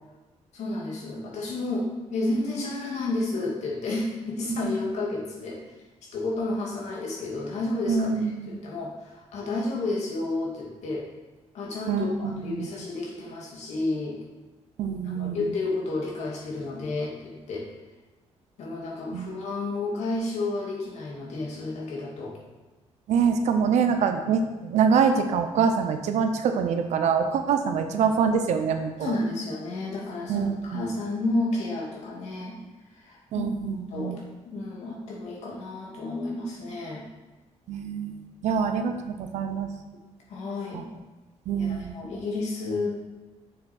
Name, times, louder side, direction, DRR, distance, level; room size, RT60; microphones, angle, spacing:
voice 1, 0.5-5.6 6.1-11.0 11.5-14.2 15.0-17.7 18.6-22.4 29.0-32.6 32.9-33.5 33.9-34.1 34.4-37.0 40.3-40.8 41.6-42.9, left 2 dB, 80° left, -3 dB, 2.2 m, -31 dB
voice 2, 7.9-8.6 11.9-12.7 14.8-15.5 19.1-19.3 23.1-29.2 30.3-30.8 33.3-34.2 37.7-39.7 40.7-40.8 41.5-42.0, right 6 dB, 90° right, 7 dB, 0.8 m, -25 dB
6.8 x 6.5 x 4.4 m, 1.2 s
cardioid pair, 150°, 11 cm